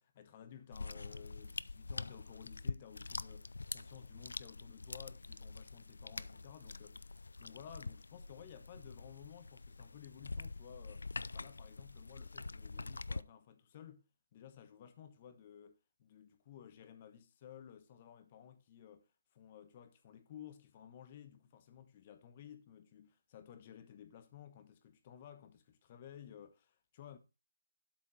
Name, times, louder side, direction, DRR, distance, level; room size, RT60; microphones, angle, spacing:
voice 1, 0.0-7.0 7.4-14.0 14.3-19.1 19.3-27.2, left 9 dB, 25° left, 1.1 m, -55 dB
sound 1, 0.7-13.2, left 3 dB, 85° left, 0.5 m, -45 dB
12.0 x 5.1 x 4.9 m
hypercardioid pair, 165°, 0 cm